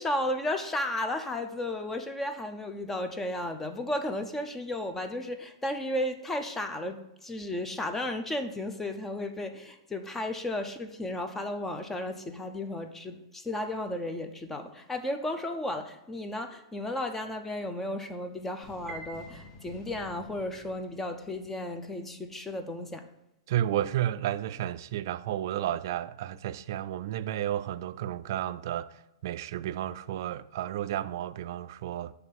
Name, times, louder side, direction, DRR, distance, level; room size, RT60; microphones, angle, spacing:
voice 1, 0.0-23.1, left 1 dB, 10° left, 0.5 m, -34 dB
sound 1, 18.6-22.1, left 2 dB, 75° left, 1.9 m, -52 dB
Piano, 18.9-20.2, right 3 dB, 15° right, 0.8 m, -46 dB
voice 2, 23.5-28.9 29.2-32.1, right 12 dB, 60° right, 0.3 m, -32 dB
7.2 x 3.3 x 5.5 m
hypercardioid pair, 135°, 2 cm